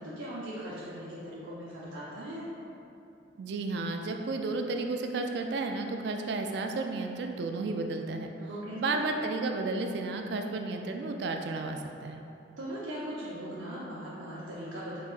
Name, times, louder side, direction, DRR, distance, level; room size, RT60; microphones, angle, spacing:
voice 1, 0.0-2.5 8.4-9.0 12.6-15.0, equal, 85° right, -10 dB, 0.8 m, -39 dB
voice 2, 3.4-8.3 8.8-12.2, right 3 dB, 60° right, 4 dB, 0.3 m, -32 dB
4.5 x 4.0 x 2.5 m, 2.7 s
head